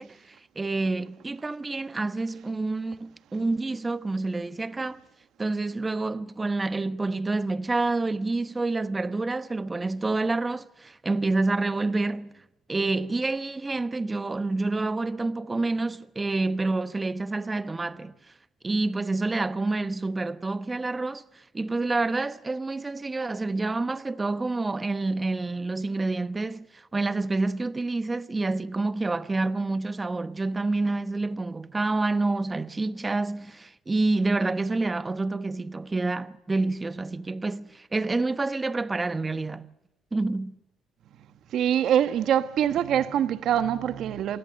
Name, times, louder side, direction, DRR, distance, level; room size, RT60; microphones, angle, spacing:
voice 1, 0.0-5.0 5.4-12.4 12.7-18.2 18.6-39.7 40.1-40.6, right 3 dB, 25° right, 1.1 m, -28 dB
voice 2, 41.5-44.4, right 10 dB, 70° right, 1.3 m, -24 dB
27.5 x 18.0 x 6.6 m
supercardioid pair, 75°, 0 cm